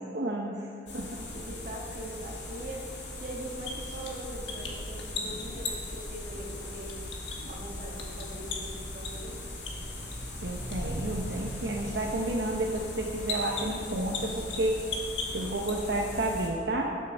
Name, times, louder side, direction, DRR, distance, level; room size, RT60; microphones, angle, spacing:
voice 1, 0.0-1.1 10.4-14.8 15.3-16.9, right 1 dB, 65° right, -1 dB, 0.8 m, -31 dB
sound 1, 0.9-16.5, left 1 dB, 70° left, 2.1 m, -40 dB
voice 2, 1.2-7.0 7.4-9.4 15.3-15.9, right 1 dB, 45° right, -2 dB, 1.5 m, -42 dB
sound 2, 3.4-16.1, left 2 dB, 90° left, 1.5 m, -40 dB
Motorcycle, 8.4-14.3, equal, 15° right, 0.8 m, -47 dB
9.7 x 6.6 x 6.6 m, 2.6 s
head